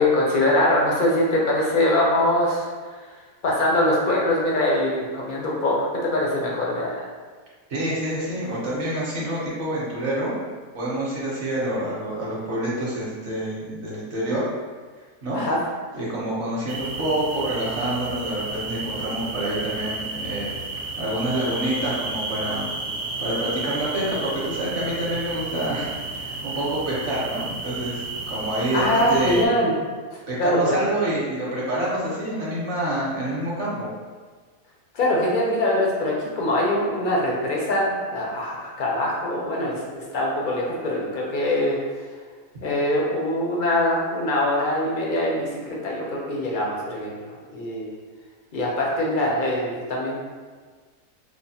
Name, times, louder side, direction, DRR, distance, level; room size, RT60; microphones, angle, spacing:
voice 1, 0.0-7.1 15.3-15.6 28.7-29.7 30.1-30.8 34.9-42.1 42.6-47.9 48.5-50.2, left 1 dB, 70° left, -3 dB, 0.4 m, -23 dB
voice 2, 7.7-10.3 10.7-14.4 15.2-15.4 15.9-22.7 23.2-29.4 30.3-33.9, right 1 dB, 50° right, -6 dB, 1.0 m, -27 dB
sound 1, 16.7-29.5, right 3 dB, 75° right, 1.0 m, -32 dB
5.0 x 2.3 x 2.7 m, 1.5 s
omnidirectional pair, 1.7 m